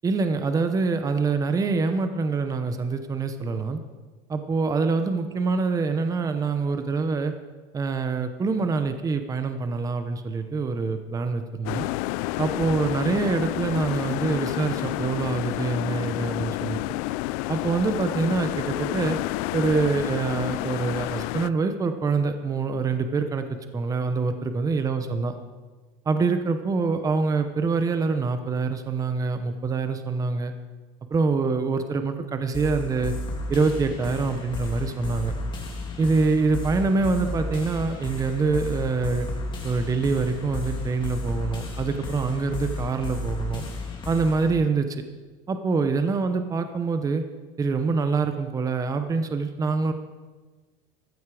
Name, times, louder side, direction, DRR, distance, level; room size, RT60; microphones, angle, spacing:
voice 1, 0.0-3.8 4.3-7.3 7.7-11.9 12.4-16.8 17.5-19.2 19.5-23.4 23.7-25.3 26.1-30.5 31.1-33.1 33.5-35.3 36.0-39.3 39.6-43.6 44.1-45.0 45.5-47.2 47.6-49.9, right 4 dB, 20° right, 8 dB, 0.9 m, -25 dB
sound 1, 11.7-21.5, left 19 dB, 85° left, 0.4 m, -29 dB
sound 2, 32.5-44.5, left 2 dB, 25° left, 2.9 m, -33 dB
14.5 x 14.0 x 5.0 m, 1.3 s
cardioid pair, 150°, 18 cm